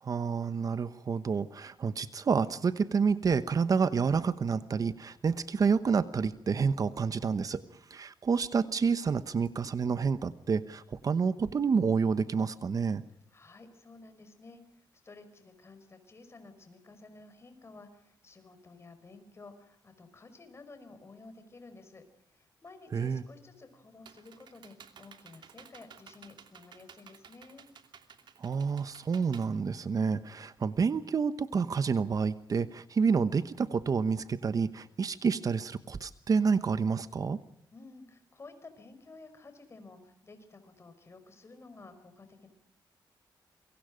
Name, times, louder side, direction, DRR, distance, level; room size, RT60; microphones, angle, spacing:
voice 1, 0.0-7.6 7.9-13.0 22.9-23.2 28.4-37.4, right 5 dB, 50° right, 13 dB, 1.1 m, -29 dB
voice 2, 13.3-27.7 37.7-42.5, left 3 dB, 35° left, 9 dB, 5.2 m, -53 dB
Computer keyboard, 23.5-30.4, right 7 dB, 70° right, 2.7 m, -55 dB
27.5 x 23.5 x 5.1 m, 0.75 s
wide cardioid pair, 115°, 8 cm